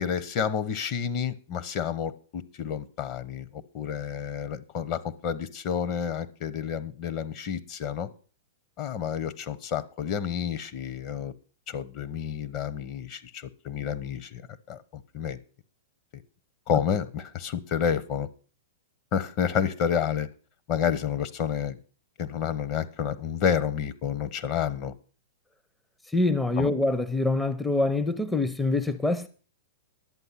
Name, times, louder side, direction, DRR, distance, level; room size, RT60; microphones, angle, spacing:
voice 1, 0.0-8.1 8.8-11.3 11.7-14.4 14.7-15.4 16.7-18.3 19.1-20.3 20.7-21.8 22.2-24.9 26.6-26.7, left 8 dB, 40° left, 1.0 m, -30 dB
voice 2, 26.1-29.3, left 2 dB, 5° left, 0.6 m, -25 dB
11.0 x 8.0 x 5.8 m
hypercardioid pair, 120°, 0 cm